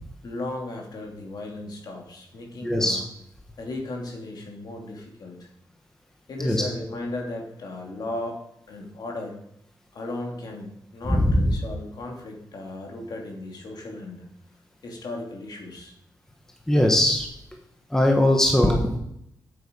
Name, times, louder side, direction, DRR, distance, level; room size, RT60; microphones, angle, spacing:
voice 1, 0.2-3.0 3.6-5.5 6.3-8.4 8.7-9.4 9.9-14.2 14.8-15.9, left 2 dB, 60° left, 1 dB, 2.6 m, -36 dB
voice 2, 2.6-3.0 6.4-6.6 11.1-11.5 16.7-17.3 17.9-19.0, left 1 dB, 5° left, 2 dB, 1.2 m, -20 dB
8.7 x 8.6 x 5.2 m, 0.76 s
wide cardioid pair, 175°, 8 cm